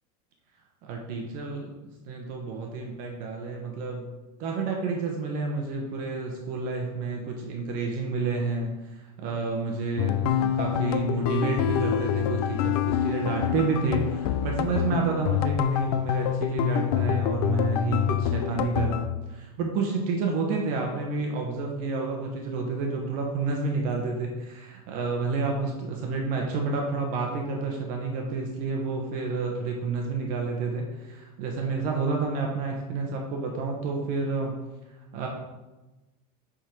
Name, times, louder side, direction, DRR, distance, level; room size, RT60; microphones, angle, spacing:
voice 1, 0.8-1.7 2.1-4.0 4.4-34.5 35.1-35.3, right 4 dB, 45° right, 1 dB, 0.9 m, -29 dB
sound 1, 10.0-19.1, left 10 dB, 80° left, 0.5 m, -26 dB
7.5 x 3.7 x 4.5 m, 1.1 s
supercardioid pair, 165°, 20 cm